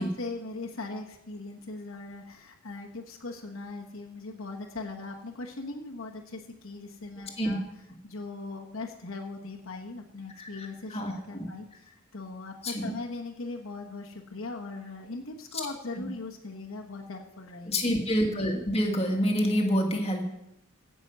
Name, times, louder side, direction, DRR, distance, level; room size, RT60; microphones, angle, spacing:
voice 1, 0.0-7.6 8.0-17.9, left 3 dB, 85° left, 1 dB, 1.3 m, -39 dB
voice 2, 10.4-11.5 12.6-12.9 16.0-16.1 17.7-20.2, equal, 30° left, 2 dB, 1.8 m, -27 dB
15.5 x 6.2 x 5.5 m, 0.86 s
head